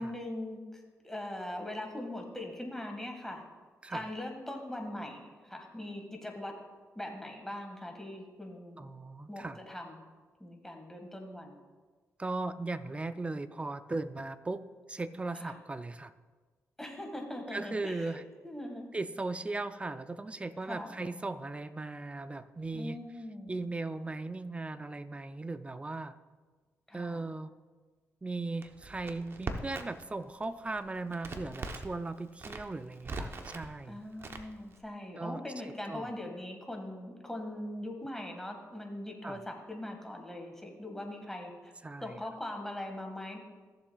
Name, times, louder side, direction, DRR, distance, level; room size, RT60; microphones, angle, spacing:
voice 1, 0.0-3.4 3.9-6.5 7.0-8.9 9.3-10.0 10.4-11.6 15.4-15.5 16.8-18.9 20.7-21.0 22.7-23.6 26.9-27.2 33.9-41.7 42.0-43.4, left 1 dB, 5° left, 2 dB, 1.7 m, -41 dB
voice 2, 8.8-9.6 12.2-16.1 17.5-18.3 18.9-23.0 23.5-26.2 26.9-27.5 28.2-34.0 35.2-36.1 39.2-39.4 41.8-42.2, right 3 dB, 20° right, 12 dB, 0.5 m, -38 dB
Crackle, 28.6-30.1 30.4-31.9 32.3-33.7 34.2-34.8, right 3 dB, 45° right, 0.9 m, -40 dB
15.5 x 7.2 x 2.3 m, 1.4 s
cardioid pair, 70°, 6 cm